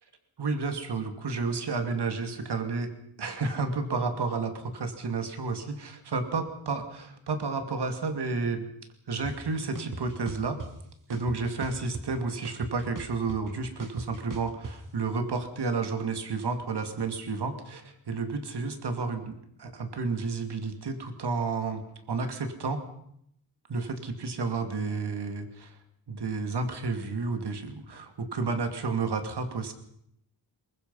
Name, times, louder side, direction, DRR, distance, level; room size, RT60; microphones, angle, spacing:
voice 1, 0.4-2.9 3.2-8.7 9.1-10.6 11.1-22.8 23.7-25.8 26.1-29.7, right 4 dB, 65° right, 7 dB, 2.6 m, -31 dB
sound 1, 9.2-9.3 9.7-10.7 11.1-12.2 12.4-14.7, right 3 dB, 45° right, 2.2 m, -39 dB
22.5 x 21.5 x 5.6 m, 0.74 s
cardioid pair, 80°, 43 cm